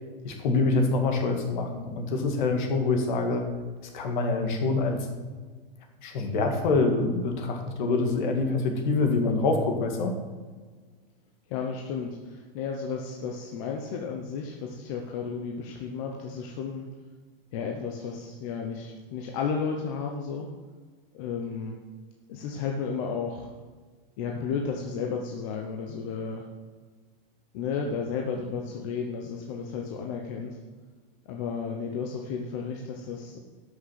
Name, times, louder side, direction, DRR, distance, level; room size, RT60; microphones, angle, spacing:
voice 1, 0.2-3.5 3.9-5.1 6.0-10.2, left 3 dB, 55° left, 4 dB, 1.9 m, -25 dB
voice 2, 11.5-16.9 17.5-20.5 21.1-21.8 22.3-23.5 24.2-26.5 27.5-30.6 31.3-33.4, left 5 dB, 35° left, 2 dB, 0.9 m, -33 dB
11.0 x 6.4 x 5.8 m, 1.4 s
supercardioid pair, 170°, 29 cm